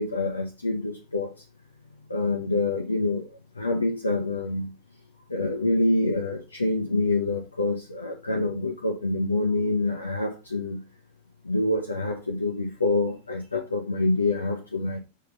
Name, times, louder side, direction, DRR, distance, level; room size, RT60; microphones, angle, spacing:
voice 1, 0.0-1.3 2.1-3.3 3.6-4.7 5.3-10.8 11.4-15.0, left 2 dB, 80° left, 0.8 m, -26 dB
6.5 x 3.7 x 3.9 m
figure-of-eight pair, 90°, 0 cm